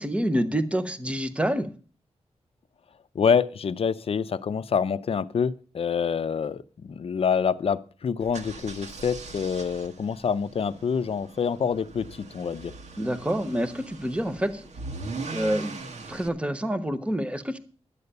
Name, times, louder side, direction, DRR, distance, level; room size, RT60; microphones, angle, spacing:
voice 1, 0.0-1.7 13.0-14.7 15.3-15.7 16.1-17.6, equal, 10° right, 1.0 m, -27 dB
voice 2, 3.1-12.7, left 6 dB, 55° left, 0.6 m, -26 dB
sound 1, 8.2-16.3, right 3 dB, 80° right, 1.4 m, -40 dB
11.5 x 8.0 x 6.7 m
wide cardioid pair, 135°, 11 cm